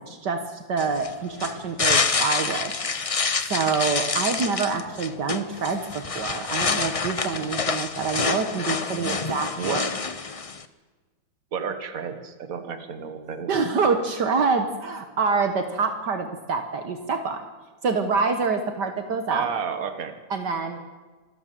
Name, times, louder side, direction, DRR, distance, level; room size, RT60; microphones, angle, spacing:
voice 1, 0.1-2.7 3.5-9.9 13.5-17.4 17.8-19.5 20.3-20.8, right 4 dB, 65° right, 7 dB, 1.9 m, -26 dB
sound 1, 0.8-10.6, left 4 dB, 50° left, 0.4 m, -27 dB
voice 2, 8.9-9.2 9.6-9.8 11.5-13.5 19.3-20.1, right 6 dB, 50° right, 8 dB, 1.9 m, -31 dB
26.5 x 13.0 x 7.5 m, 1.3 s
omnidirectional pair, 2.0 m